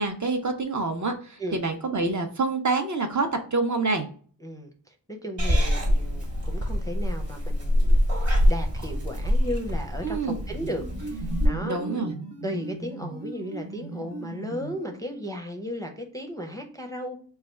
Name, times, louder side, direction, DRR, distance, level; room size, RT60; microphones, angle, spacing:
voice 1, 0.0-4.1 10.0-10.4 11.7-12.1, right 3 dB, 40° right, 5 dB, 0.6 m, -27 dB
voice 2, 4.4-12.1 12.4-17.2, equal, 10° left, 3 dB, 0.5 m, -35 dB
Purr / Meow, 5.4-11.5, equal, 85° right, 1.6 m, -24 dB
sound 1, 10.4-15.3, right 3 dB, 65° right, 1.0 m, -37 dB
3.2 x 2.3 x 4.3 m, 0.43 s
wide cardioid pair, 85°, 44 cm